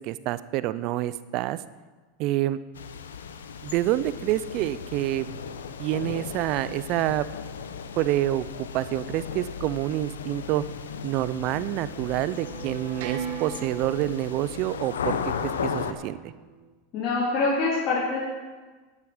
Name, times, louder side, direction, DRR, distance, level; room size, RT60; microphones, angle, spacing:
voice 1, 0.0-1.6 2.2-2.6 3.6-5.3 5.8-7.3 8.0-10.6 11.0-16.3, right 14 dB, 55° right, 16 dB, 0.5 m, -27 dB
sound 1, 2.8-15.9, left 6 dB, 90° left, 0.8 m, -36 dB
sound 2, 11.6-16.7, right 7 dB, 70° right, 1.5 m, -39 dB
voice 2, 16.9-18.2, left 3 dB, 45° left, -7 dB, 3.2 m, -25 dB
11.0 x 9.8 x 5.0 m, 1.3 s
hypercardioid pair, 105°, 0 cm